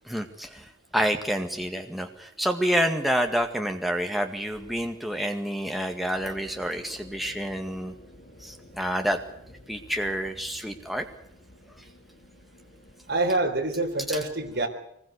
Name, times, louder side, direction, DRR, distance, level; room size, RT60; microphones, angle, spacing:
voice 1, 0.1-0.6 0.9-7.9 8.4-9.2 9.7-11.1 14.1-14.2, equal, ahead, 4 dB, 1.9 m, -28 dB
sound 1, 6.1-14.1, left 1 dB, 45° left, 6.9 m, -51 dB
voice 2, 13.1-14.7, right 2 dB, 65° right, 1 dB, 4.1 m, -26 dB
23.5 x 21.0 x 6.8 m, 0.71 s
head